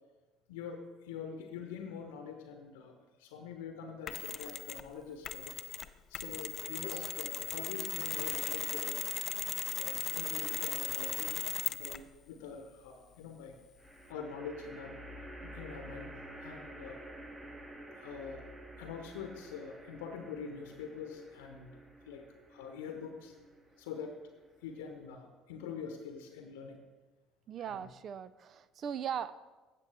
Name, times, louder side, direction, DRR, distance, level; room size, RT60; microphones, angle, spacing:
voice 1, 0.5-5.8 6.1-9.0 9.7-13.6 14.1-16.1 16.4-17.0 17.9-18.4 18.8-21.7 22.0-22.2 22.5-23.3 23.8-24.2 24.6-26.8 27.7-27.9, left 6 dB, 70° left, 5 dB, 0.9 m, -45 dB
Mechanisms, 4.1-4.9 5.2-12.1, left 8 dB, 45° left, 0.5 m, -37 dB
sound 1, 10.7-11.3 13.8-25.2, right 1 dB, 20° right, 1.6 m, -51 dB
voice 2, 27.5-29.3, right 8 dB, 45° right, 16 dB, 0.4 m, -39 dB
15.5 x 6.8 x 3.4 m, 1.2 s
figure-of-eight pair, 55°, 0 cm